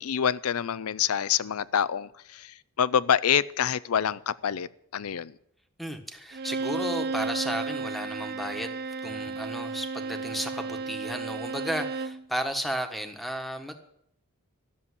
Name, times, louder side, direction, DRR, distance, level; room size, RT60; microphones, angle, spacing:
voice 1, 0.0-5.4, left 8 dB, 80° left, 0.5 m, -27 dB
voice 2, 5.8-8.7 9.0-13.8, equal, ahead, 1.4 m, -34 dB
Bowed string instrument, 6.3-12.2, right 3 dB, 50° right, 0.5 m, -33 dB
13.5 x 7.0 x 9.8 m
head